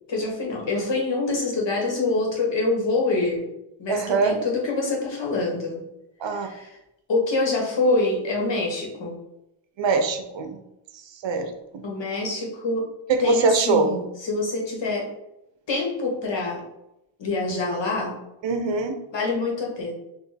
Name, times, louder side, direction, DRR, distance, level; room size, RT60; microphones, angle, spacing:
voice 1, 0.1-3.5 3.8-5.8 6.3-6.8 7.1-9.1 11.8-12.9 13.2-15.1 15.7-16.6 17.2-18.2 19.1-19.9, left 3 dB, 60° left, -1 dB, 1.4 m, -25 dB
voice 2, 3.9-4.4 6.2-6.5 9.8-10.6 11.2-11.5 13.1-13.9 18.4-19.0, right 4 dB, 65° right, 7 dB, 0.7 m, -22 dB
4.4 x 2.6 x 3.4 m, 0.88 s
cardioid pair, 65°, 49 cm